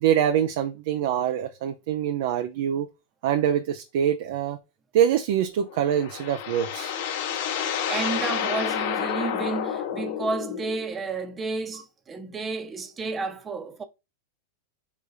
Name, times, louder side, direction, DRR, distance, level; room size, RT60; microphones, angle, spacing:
voice 1, 0.0-2.9 3.2-4.6 4.9-6.9, right 9 dB, 65° right, 0.5 m, -24 dB
sound 1, 5.7-10.9, left 8 dB, 65° left, 0.8 m, -29 dB
voice 2, 7.4-13.8, right 4 dB, 20° right, 0.8 m, -32 dB
5.0 x 3.4 x 2.7 m
hypercardioid pair, 115°, 0 cm